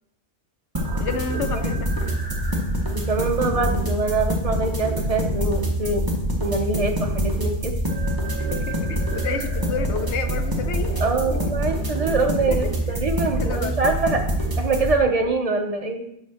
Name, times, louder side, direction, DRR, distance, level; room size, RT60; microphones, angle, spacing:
sound 1, 0.7-14.9, right 1 dB, 20° right, 1.1 m, -25 dB
voice 1, 1.0-2.1 8.5-11.0 11.3-11.4 12.5-12.6 12.9-13.0 13.4-13.8, left 5 dB, 75° left, 9 dB, 0.9 m, -30 dB
voice 2, 2.9-6.1 6.4-7.7 11.0-14.3 14.6-16.0, right 3 dB, 35° right, 5 dB, 0.7 m, -24 dB
6.0 x 5.7 x 4.2 m, 0.77 s
omnidirectional pair, 1.2 m